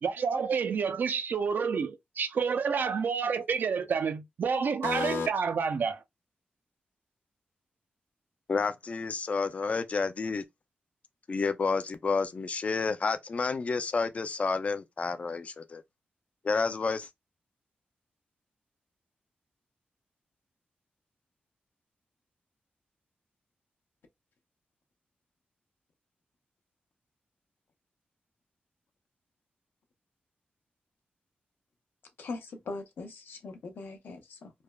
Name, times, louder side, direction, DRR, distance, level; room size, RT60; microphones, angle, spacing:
voice 1, 0.0-6.0, right 6 dB, 65° right, 0.4 m, -29 dB
voice 2, 4.8-5.3 32.2-34.5, left 4 dB, 80° left, 0.6 m, -36 dB
voice 3, 8.5-10.4 11.3-15.8 16.4-17.1, left 4 dB, 40° left, 0.4 m, -30 dB
3.3 x 2.1 x 2.2 m
wide cardioid pair, 120°, 4 cm